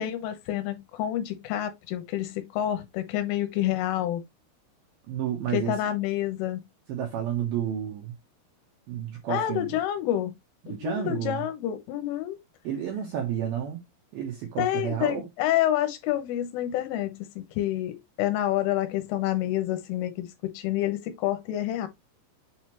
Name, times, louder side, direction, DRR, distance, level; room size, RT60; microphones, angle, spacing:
voice 1, 0.0-4.2 5.5-6.6 9.3-10.4 10.8-12.4 14.6-21.9, left 12 dB, 80° left, 3.4 m, -28 dB
voice 2, 5.1-5.8 6.9-8.2 8.9-9.8 10.6-11.4 12.6-13.8 14.1-15.3, right 9 dB, 85° right, 2.1 m, -31 dB
7.9 x 4.2 x 3.0 m
omnidirectional pair, 6.0 m